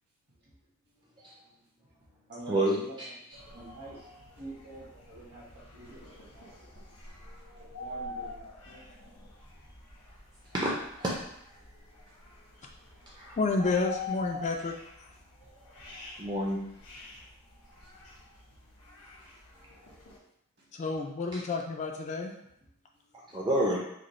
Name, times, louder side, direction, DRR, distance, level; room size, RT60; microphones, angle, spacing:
voice 1, 1.4-2.9 3.5-4.1 4.3-8.4 8.6-8.9 9.6-10.2 11.6-11.8 12.2-13.1 15.9-16.0 17.5-19.3 19.9-20.0 20.6-20.7 22.9-23.1, right 2 dB, 50° right, -6 dB, 1.4 m, -50 dB
voice 2, 2.5-3.1 10.5-10.7 11.0-11.1 13.1-13.3 16.2-16.6 21.3-21.4 23.3-23.8, right 1 dB, 20° right, -5 dB, 0.5 m, -28 dB
sound 1, 3.3-20.2, left 3 dB, 80° left, 1.0 m, -46 dB
voice 3, 13.4-14.8 20.7-22.3, left 3 dB, 30° left, 2 dB, 0.3 m, -30 dB
4.8 x 2.1 x 3.1 m, 0.75 s
head